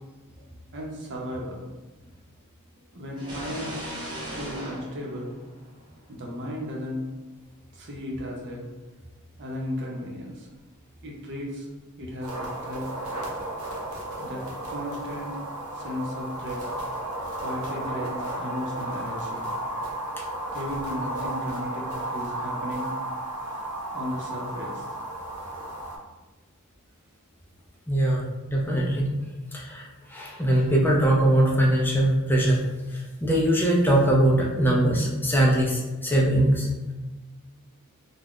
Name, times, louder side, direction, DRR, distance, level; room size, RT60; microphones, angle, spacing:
voice 1, 0.7-1.6 2.9-3.9 4.3-5.3 6.1-7.0 7.7-8.6 9.4-10.5 11.0-11.7 12.0-12.9 14.2-14.4 14.7-15.4 15.7-16.6 17.4-19.5 20.5-21.9 22.1-22.9 23.9-24.8, equal, 55° right, -1 dB, 0.7 m, -35 dB
sound 1, 3.2-6.0, right 1 dB, 20° right, 0.8 m, -37 dB
sound 2, 12.2-26.0, right 1 dB, 85° right, 0.7 m, -33 dB
voice 2, 27.9-28.2 28.5-29.1 29.5-29.8 30.1-32.6 33.2-36.7, right 1 dB, 10° left, -2 dB, 0.4 m, -21 dB
2.4 x 2.1 x 3.5 m, 1.2 s
head